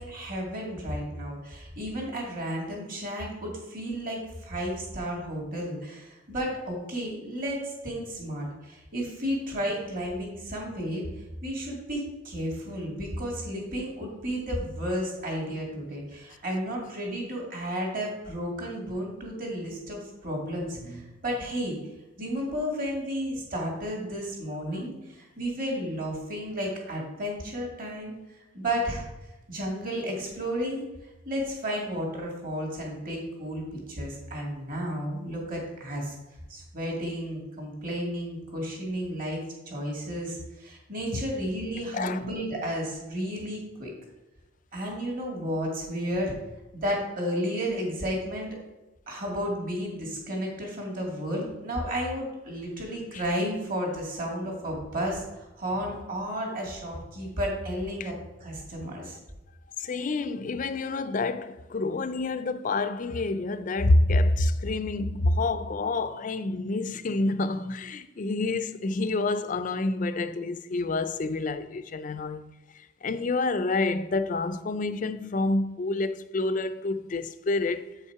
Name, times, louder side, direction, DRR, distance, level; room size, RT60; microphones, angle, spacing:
voice 1, 0.0-11.1 11.4-21.8 22.2-29.1 29.5-30.9 31.3-33.6 33.9-36.1 36.5-43.9 44.7-46.3 46.7-48.5 49.1-58.1 58.4-59.2, equal, 45° right, 2.2 m, -32 dB
voice 2, 41.9-42.3 53.1-53.2 58.0-58.1 59.8-77.9, left 2 dB, 40° left, 0.4 m, -28 dB
7.8 x 5.6 x 4.7 m
head